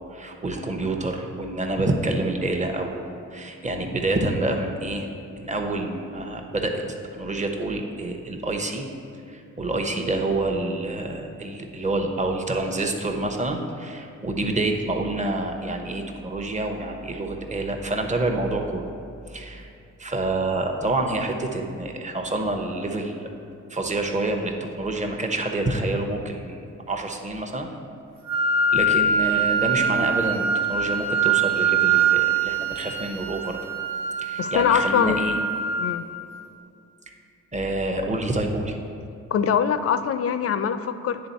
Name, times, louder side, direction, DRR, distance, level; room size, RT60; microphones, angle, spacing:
voice 1, 0.1-3.0 3.3-6.8 7.2-8.9 9.3-18.9 19.3-19.7 20.0-23.3 23.7-26.6 26.9-27.7 28.7-33.6 34.2-35.4 37.5-38.8, right 2 dB, 25° right, 3 dB, 0.9 m, -27 dB
Wind instrument woodwind instrument, 28.3-36.2, right 4 dB, 90° right, 1.4 m, -23 dB
voice 2, 34.4-35.2 35.8-36.0 39.3-41.2, left 8 dB, 50° left, 11 dB, 0.5 m, -23 dB
9.7 x 3.7 x 4.2 m, 2.6 s
supercardioid pair, 60°, 31 cm